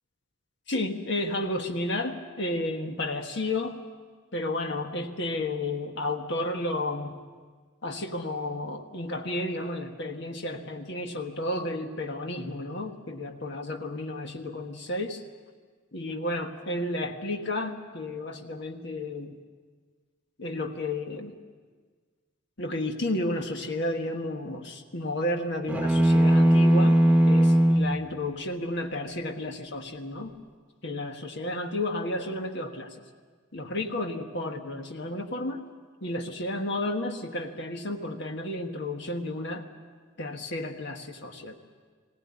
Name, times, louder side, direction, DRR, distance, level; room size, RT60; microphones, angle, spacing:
voice 1, 0.7-3.8 4.3-7.2 7.8-15.2 15.9-19.4 20.4-21.4 22.6-30.3 30.8-33.0 33.5-35.7 36.0-39.7 40.2-41.6, left 1 dB, 55° left, 3 dB, 1.4 m, -32 dB
sound 1, 25.7-27.9, right 1 dB, 5° right, 1.0 m, -19 dB
20.5 x 17.5 x 9.7 m, 1.5 s
head